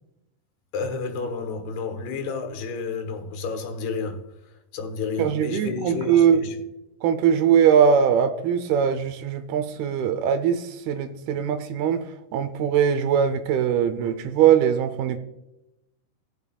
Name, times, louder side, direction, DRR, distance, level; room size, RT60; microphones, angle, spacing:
voice 1, 0.7-4.3 4.7-6.6, left 4 dB, 80° left, 3.3 m, -31 dB
voice 2, 5.2-6.4 7.0-15.2, right 8 dB, 80° right, 2.5 m, -21 dB
19.0 x 7.0 x 2.3 m
omnidirectional pair, 4.6 m